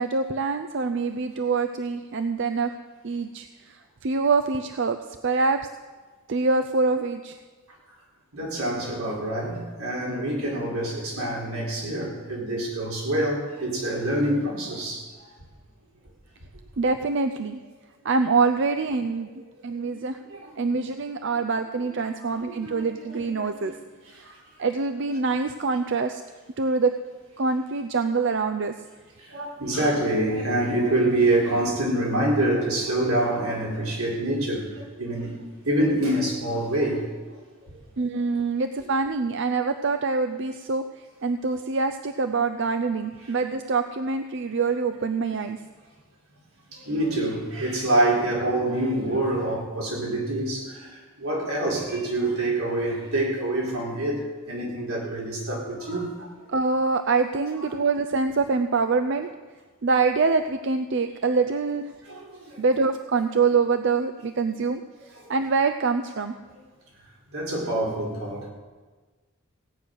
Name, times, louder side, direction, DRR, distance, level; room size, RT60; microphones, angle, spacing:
voice 1, 0.0-2.7 3.0-5.6 6.3-7.4 16.8-17.6 18.0-19.3 19.6-20.2 20.6-23.7 24.1-26.2 26.6-26.9 27.4-28.7 38.0-45.6 56.5-59.3 59.8-61.9 62.6-64.8 65.3-66.3, right 4 dB, 55° right, 8 dB, 0.5 m, -25 dB
voice 2, 8.3-15.3 19.6-19.9 20.3-20.6 22.2-23.7 24.2-24.3 29.2-35.4 35.6-37.8 46.7-56.3 62.0-62.6 66.5-66.6 67.3-68.5, right 1 dB, 85° right, -3 dB, 4.3 m, -26 dB
17.0 x 9.6 x 6.5 m, 1.3 s
head